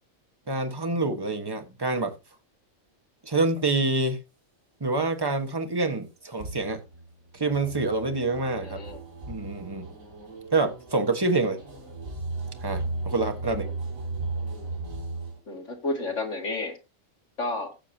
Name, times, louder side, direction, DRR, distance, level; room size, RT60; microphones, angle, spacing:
voice 1, 0.5-2.1 3.2-4.2 4.8-6.8 7.3-8.8 9.3-9.9 10.5-11.6 12.6-13.7, right 3 dB, 20° right, 1.4 m, -26 dB
sound 1, 6.4-15.4, right 3 dB, 85° right, 3.4 m, -36 dB
voice 2, 8.6-9.0 11.4-11.5 13.6-13.7 15.5-16.8 17.4-17.7, left 2 dB, 65° left, 2.6 m, -31 dB
15.5 x 7.2 x 2.9 m
omnidirectional pair, 1.4 m